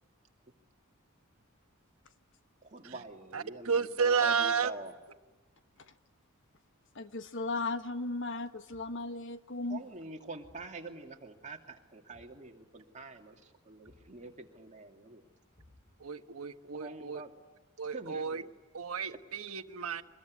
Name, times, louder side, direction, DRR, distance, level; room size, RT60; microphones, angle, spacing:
voice 1, 2.6-4.9 9.7-15.2 16.7-17.3 17.9-18.5, right 2 dB, 35° right, 2 dB, 2.7 m, -46 dB
voice 2, 3.3-4.7 16.0-17.2 17.8-18.4 18.7-20.0, right 6 dB, 80° right, 9 dB, 1.4 m, -32 dB
voice 3, 6.9-9.8, left 3 dB, 60° left, 9 dB, 1.4 m, -36 dB
Thump thud, 8.7-9.1 10.4-10.8 12.1-12.5 13.8-14.2 15.5-16.1, left 1 dB, 35° left, 6.2 m, -62 dB
25.0 x 21.5 x 9.7 m, 1.2 s
head